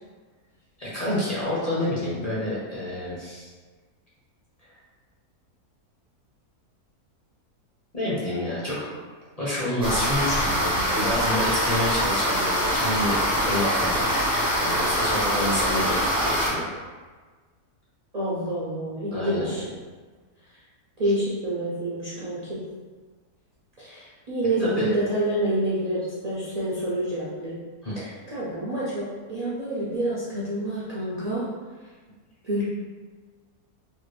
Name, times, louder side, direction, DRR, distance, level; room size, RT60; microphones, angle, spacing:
voice 1, 0.8-3.5 7.9-8.9 9.4-14.0 14.6-16.7 19.1-19.6 24.6-24.9 27.8-27.9, left 1 dB, 35° left, -9 dB, 0.7 m, -28 dB
sound 1, 9.8-16.5, equal, 5° right, 0.4 m, -24 dB
voice 2, 18.1-19.6 21.0-22.6 23.8-27.6 28.0-31.5 32.4-32.6, right 1 dB, 85° right, -9 dB, 0.3 m, -28 dB
3.2 x 2.4 x 3.1 m, 1.4 s
omnidirectional pair, 1.7 m